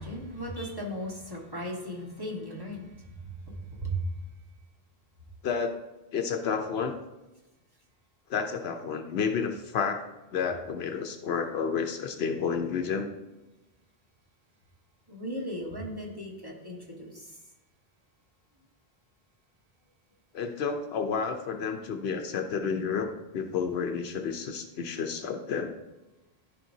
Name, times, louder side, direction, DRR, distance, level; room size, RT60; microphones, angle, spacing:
voice 1, 0.0-4.1 15.1-17.4, right 1 dB, 20° right, -2 dB, 1.5 m, -37 dB
voice 2, 5.4-5.8 6.1-7.0 8.3-13.1 20.3-25.7, left 6 dB, 80° left, 5 dB, 0.9 m, -31 dB
13.0 x 5.0 x 2.7 m, 1.0 s
omnidirectional pair, 1.0 m